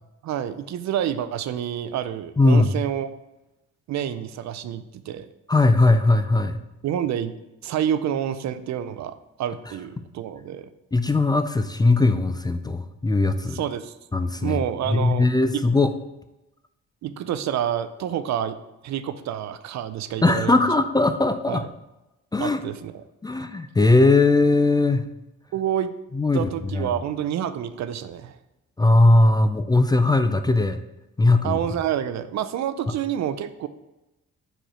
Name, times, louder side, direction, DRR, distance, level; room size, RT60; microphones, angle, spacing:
voice 1, 0.2-3.1 3.9-5.3 6.8-7.3 7.6-10.7 13.5-13.9 14.4-15.6 17.0-18.6 18.8-20.6 21.5-21.6 22.4-23.0 25.5-25.9 26.3-28.4 31.4-33.7, right 10 dB, 65° right, 13 dB, 0.5 m, -28 dB
voice 2, 2.4-2.7 5.5-6.6 10.9-13.6 14.1-14.6 14.9-15.9 20.2-21.6 22.3-22.6 23.2-25.1 26.1-26.9 28.8-30.8 31.2-31.6, left 2 dB, 15° left, 9 dB, 0.3 m, -19 dB
5.2 x 4.4 x 4.9 m, 0.98 s
cardioid pair, 90°, 30 cm